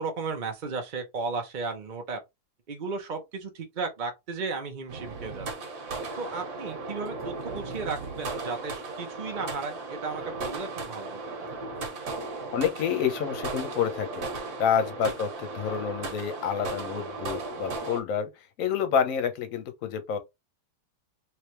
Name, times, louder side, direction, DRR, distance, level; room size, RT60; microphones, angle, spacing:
voice 1, 0.0-2.2 2.7-5.5 6.2-11.4 15.0-15.1, right 4 dB, 40° right, 0.7 m, -35 dB
sound 1, 4.9-18.0, right 3 dB, 70° right, 1.6 m, -36 dB
voice 2, 12.5-14.3 14.6-18.3 18.6-20.2, left 8 dB, 60° left, 1.1 m, -28 dB
3.3 x 3.1 x 3.0 m
omnidirectional pair, 1.7 m